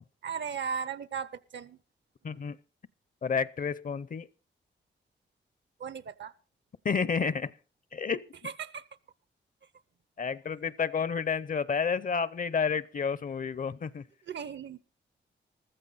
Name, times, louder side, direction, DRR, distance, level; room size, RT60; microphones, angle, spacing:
voice 1, 0.2-1.8 5.8-6.3 8.4-8.8 14.3-14.8, right 6 dB, 70° right, 0.8 m, -36 dB
voice 2, 2.2-2.6 3.2-4.3 6.8-7.5 7.9-8.3 10.2-14.0, left 6 dB, 45° left, 0.6 m, -30 dB
14.5 x 13.5 x 4.0 m
cardioid pair, 85°, 20 cm